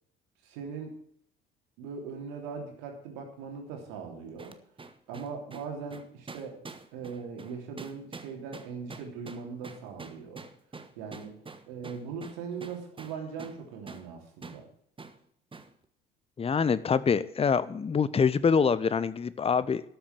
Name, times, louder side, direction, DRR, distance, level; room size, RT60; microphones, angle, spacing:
voice 1, 0.4-1.0 1.8-4.6 5.1-6.6 6.9-10.4 11.0-11.4 11.7-14.7, right 5 dB, 65° right, 3 dB, 3.2 m, -40 dB
sound 1, 4.4-13.6 13.9-14.1 14.4-14.6 15.0-15.2 15.5-15.7, right 3 dB, 20° right, 1.3 m, -46 dB
voice 2, 16.4-19.8, left 6 dB, 20° left, 16 dB, 0.8 m, -25 dB
13.0 x 6.9 x 7.6 m, 0.67 s
figure-of-eight pair, 55°, 29 cm